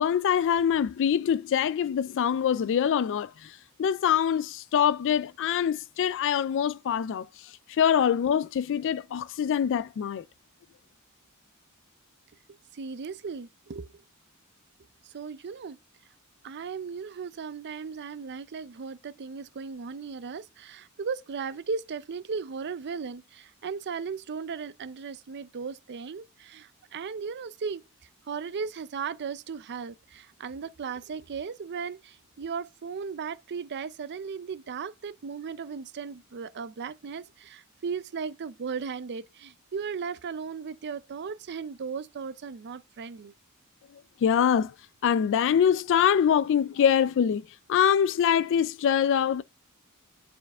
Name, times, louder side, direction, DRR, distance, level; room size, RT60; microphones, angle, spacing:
voice 1, 0.0-10.3 44.2-44.7 45.0-49.4, left 8 dB, 60° left, 0.3 m, -24 dB
voice 2, 12.7-13.9 15.0-15.8 16.4-27.8 28.3-43.3, right 5 dB, 50° right, 0.5 m, -36 dB
9.4 x 4.5 x 3.5 m
head